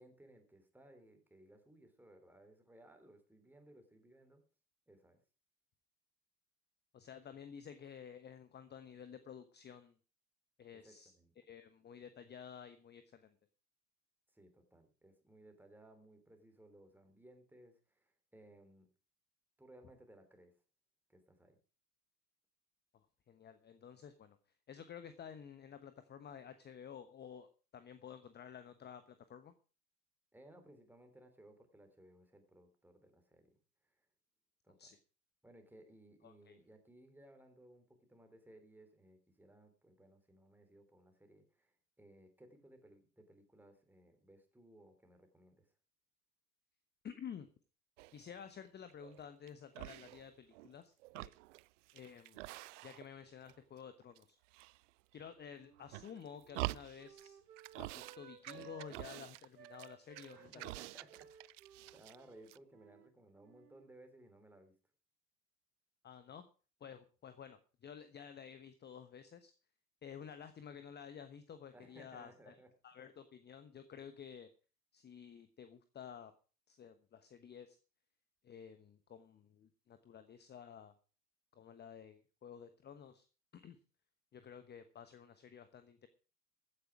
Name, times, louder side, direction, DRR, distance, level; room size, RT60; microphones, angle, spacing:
voice 1, 0.0-4.4 4.9-5.2 10.8-11.3 14.3-18.9 19.6-20.5 21.1-21.6 30.3-33.5 33.8-34.1 34.6-34.9 35.4-45.7 60.3-64.7 71.7-72.7, right 1 dB, 5° right, 6 dB, 3.5 m, -61 dB
voice 2, 6.9-10.0 10.6-13.3 23.3-24.4 24.7-27.5 27.7-29.5 34.8-35.0 36.2-36.6 47.0-47.5 48.1-51.3 51.9-52.4 52.8-54.4 55.1-57.4 57.7-60.7 66.0-66.4 66.8-69.5 70.0-72.6 72.8-74.5 74.9-76.3 76.7-77.8 78.4-80.9 81.5-83.3 83.5-83.8 84.3-86.1, left 8 dB, 20° left, 11 dB, 1.1 m, -52 dB
sound 1, 48.0-48.4 48.9-49.5 49.8-50.7 51.0-53.2 53.5-54.2 54.5-55.3 55.8-57.3 57.6-58.2 58.4-62.2 62.5-62.6, right 20 dB, 50° right, 0.5 m, -47 dB
Wind instrument woodwind instrument, 55.4-59.2 59.5-63.1 63.4-63.9, right 8 dB, 80° right, 1.1 m, -59 dB
15.0 x 9.8 x 4.9 m, 0.36 s
figure-of-eight pair, 85°, 48 cm